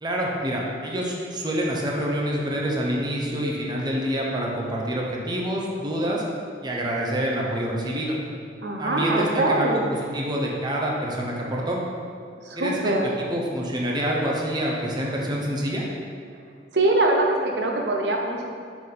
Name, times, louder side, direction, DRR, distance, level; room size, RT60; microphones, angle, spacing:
voice 1, 0.0-6.2 6.6-8.2 8.8-9.8 10.1-11.8 12.6-13.0 13.3-15.8, equal, 25° right, -2 dB, 0.8 m, -27 dB
voice 2, 8.6-9.8 12.4-13.0 16.7-18.5, right 2 dB, 70° right, 1 dB, 0.8 m, -23 dB
5.4 x 4.8 x 3.9 m, 2.2 s
head